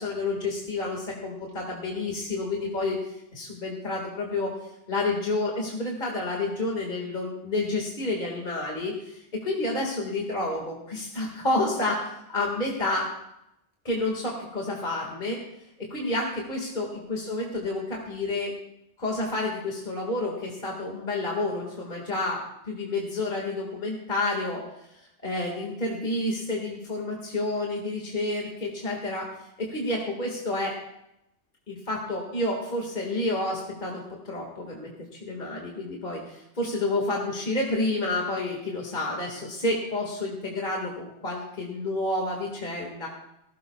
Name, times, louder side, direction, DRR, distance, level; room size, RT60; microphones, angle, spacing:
voice 1, 0.0-3.0 3.3-4.5 4.9-13.1 13.8-15.4 15.9-18.5 19.0-24.6 25.0-29.3 29.6-30.7 31.7-43.1, left 2 dB, 45° left, -1 dB, 2.1 m, -29 dB
19.5 x 16.5 x 2.4 m, 0.83 s
omnidirectional pair, 1.2 m